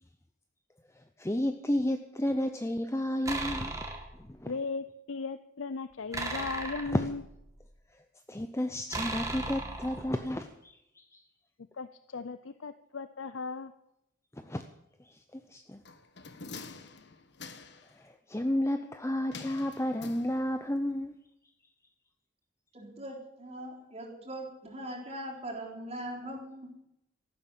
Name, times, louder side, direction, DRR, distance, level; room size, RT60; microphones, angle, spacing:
voice 1, 1.2-3.7 4.2-4.5 6.9-7.0 8.3-11.2 14.3-14.6 15.1-15.8 18.0-21.2, left 1 dB, 15° left, 8 dB, 0.7 m, -32 dB
sound 1, 3.3-4.2 6.1-7.6 8.9-10.4, right 2 dB, 15° right, 2.2 m, -36 dB
voice 2, 4.5-7.2 11.7-13.7, left 4 dB, 85° left, 12 dB, 0.6 m, -37 dB
sound 2, 15.9-18.0 19.3-20.8 21.0-21.1, left 4 dB, 60° left, 1.3 m, -46 dB
voice 3, 22.7-26.7, right 1 dB, 35° right, -1 dB, 3.8 m, -41 dB
14.5 x 12.0 x 7.6 m, 0.83 s
head